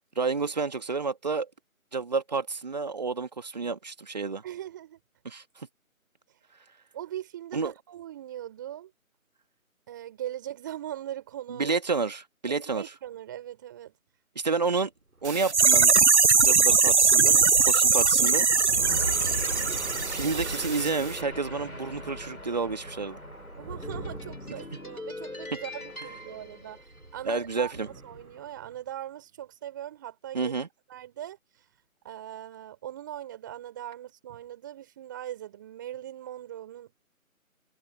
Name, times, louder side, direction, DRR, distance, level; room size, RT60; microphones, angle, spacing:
voice 1, 0.2-1.5 1.9-4.4 5.3-5.7 7.5-7.7 11.6-12.8 14.4-14.9 15.2-15.9 16.4-18.5 20.1-23.2 27.3-27.9 30.3-30.7, right 4 dB, 30° right, 2.0 m, -30 dB
voice 2, 4.4-5.0 6.9-8.9 9.9-11.8 12.5-14.0 23.5-27.7 28.0-30.5 30.9-31.6 32.0-37.0, right 12 dB, 15° right, 4.5 m, -40 dB
sound 1, 15.1-28.7, right 2 dB, 85° right, 2.9 m, -42 dB
sound 2, 15.2-20.9 21.1-21.2, right 5 dB, 55° right, 0.6 m, -21 dB
sound 3, 18.8-27.4, left 2 dB, 80° left, 5.0 m, -42 dB
figure-of-eight pair, 165°, 42 cm